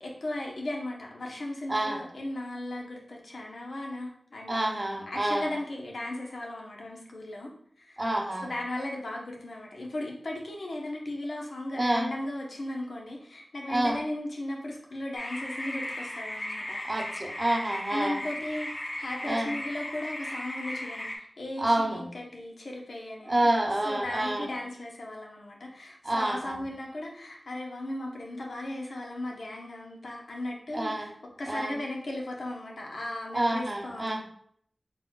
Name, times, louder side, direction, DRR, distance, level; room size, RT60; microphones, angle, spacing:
voice 1, 0.0-4.6 5.1-7.5 7.8-8.0 8.4-16.8 17.9-23.5 23.8-31.1 31.4-34.2, left 1 dB, 85° left, -1 dB, 0.9 m, -36 dB
voice 2, 1.7-2.0 4.5-5.5 8.0-8.5 11.8-12.1 13.7-14.0 16.9-18.2 19.3-19.5 21.6-22.1 23.2-24.5 26.0-26.6 30.7-31.1 31.5-31.8 33.3-34.2, right 1 dB, 35° right, 2 dB, 0.7 m, -28 dB
sound 1, 15.1-21.2, left 1 dB, 40° left, 0.7 m, -36 dB
4.2 x 4.0 x 2.3 m, 0.63 s
wide cardioid pair, 65°, 0 cm